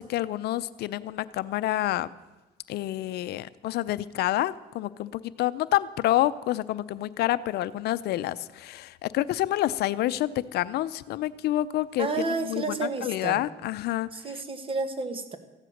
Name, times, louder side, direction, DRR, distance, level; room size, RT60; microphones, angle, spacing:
voice 1, 0.0-2.1 2.7-12.6 13.0-14.1, left 14 dB, 75° left, 15 dB, 0.6 m, -28 dB
voice 2, 12.0-13.4 14.1-15.4, right 3 dB, 30° right, 10 dB, 1.6 m, -31 dB
14.5 x 10.5 x 6.5 m, 1.2 s
cardioid pair, 110°, 17 cm